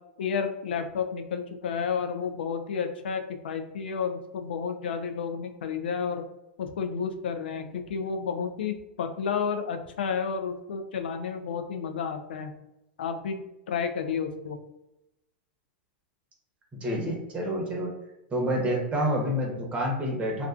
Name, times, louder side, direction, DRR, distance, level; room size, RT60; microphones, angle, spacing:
voice 1, 0.2-6.2 6.6-12.5 13.0-14.6, left 6 dB, 80° left, 6 dB, 0.4 m, -31 dB
voice 2, 16.8-17.9 18.3-20.5, equal, 25° right, 0 dB, 0.8 m, -28 dB
2.3 x 2.3 x 2.3 m, 0.91 s
hypercardioid pair, 105°, 5 cm